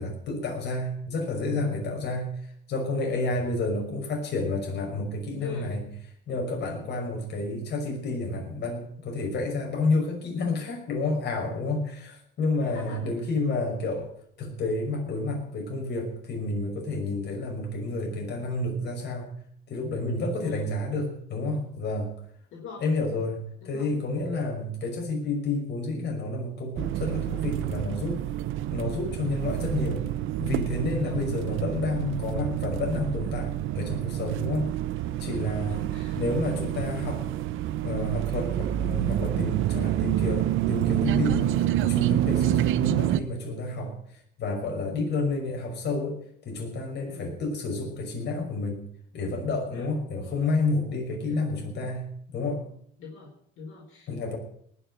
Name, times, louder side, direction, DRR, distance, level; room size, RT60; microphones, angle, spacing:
voice 1, 0.0-2.3 2.7-5.8 6.3-14.1 14.4-19.3 19.7-22.1 22.8-28.2 28.7-30.1 30.4-34.7 35.2-35.9 36.2-37.2 37.8-41.5 41.8-43.9 44.4-46.2 46.4-48.8 49.1-52.1 52.3-52.6 54.1-54.4, left 2 dB, 55° left, 1 dB, 5.8 m, -30 dB
voice 2, 5.4-5.8 12.6-13.1 20.4-20.7 22.5-22.9 23.6-23.9 31.0-31.2 35.7-36.2 42.3-42.5 47.0-47.3 49.7-49.9 51.3-51.4 53.0-54.1, left 4 dB, 75° left, -2 dB, 4.8 m, -42 dB
sound 1, 26.8-43.2, right 13 dB, 75° right, 0.9 m, -28 dB
19.0 x 7.1 x 9.2 m, 0.67 s
cardioid pair, 110°, 21 cm